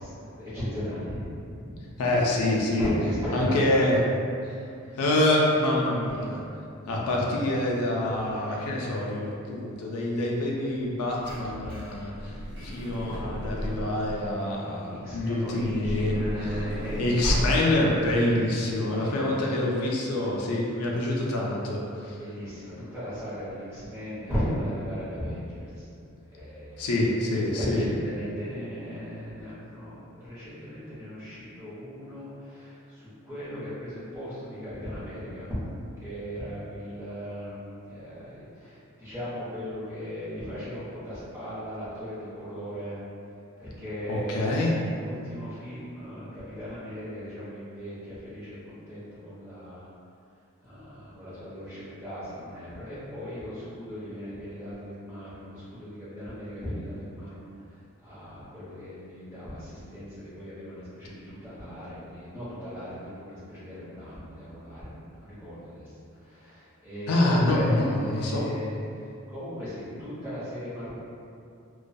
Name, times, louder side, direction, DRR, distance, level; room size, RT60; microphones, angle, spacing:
voice 1, 0.0-1.7 2.8-3.7 13.2-13.4 14.6-17.5 19.0-19.5 22.1-25.7 26.3-27.1 27.5-29.9 30.2-35.5 36.0-37.6 37.9-38.7 39.0-43.0 43.6-44.5 44.8-46.3 46.6-48.6 48.9-49.9 50.6-57.4 58.0-64.9 65.2-65.9 66.3-68.7 69.3-70.9, equal, 10° right, -12 dB, 0.8 m, -37 dB
voice 2, 2.0-2.9 3.3-4.0 5.0-6.4 6.9-12.1 12.6-16.7 17.0-22.2 26.8-27.8 44.1-44.7 67.1-68.6, left 1 dB, 85° left, -3 dB, 0.4 m, -26 dB
Truck / Door, 11.2-14.4 15.4-17.9 18.6-18.7 18.9-19.1, equal, 55° right, 0.9 m, -33 dB
2.2 x 2.2 x 2.5 m, 2.5 s
head